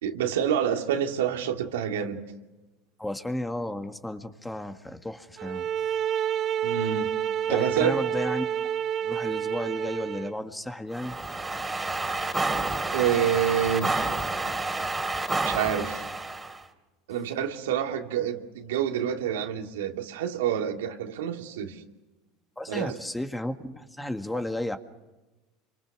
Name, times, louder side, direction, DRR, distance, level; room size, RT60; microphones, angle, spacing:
voice 1, 0.0-2.2 6.6-7.1 7.5-8.0 12.1-12.3 12.9-14.1 15.4-16.1 17.1-21.8 22.7-23.0, right 9 dB, 90° right, 3 dB, 2.8 m, -28 dB
voice 2, 3.0-5.7 7.5-8.7 9.0-11.2 22.6-24.8, left 1 dB, 10° left, 7 dB, 1.9 m, -33 dB
sound 1, 5.4-10.4, right 9 dB, 45° right, 0.9 m, -29 dB
sound 2, 10.9-16.6, right 3 dB, 10° right, 3.6 m, -29 dB
29.0 x 25.0 x 6.2 m, 1.1 s
supercardioid pair, 105°, 0 cm